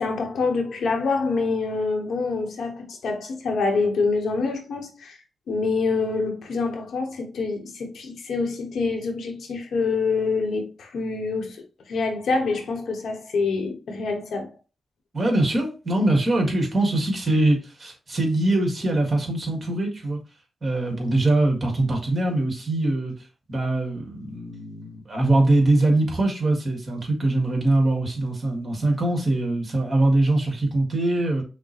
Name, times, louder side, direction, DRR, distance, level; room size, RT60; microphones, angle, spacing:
voice 1, 0.0-5.2 5.5-11.6 11.9-14.5, left 4 dB, 80° left, 1.0 m, -26 dB
voice 2, 15.1-20.2 20.6-23.1 23.5-31.4, right 2 dB, 40° right, 1.7 m, -22 dB
5.8 x 2.1 x 3.0 m
cardioid pair, 80°, 0 cm